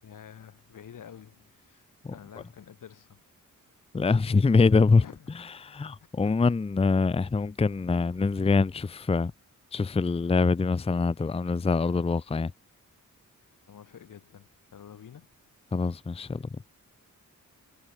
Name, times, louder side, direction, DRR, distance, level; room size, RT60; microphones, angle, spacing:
voice 1, 0.0-1.8 2.1-3.2 5.0-5.4 5.8-5.9 6.2-6.4 13.7-15.3, left 8 dB, 85° left, 2.6 m, -49 dB
voice 2, 3.9-5.0 5.6-9.3 9.7-12.5 15.7-16.5, left 4 dB, 20° left, 0.6 m, -24 dB
wide cardioid pair, 145°, 31 cm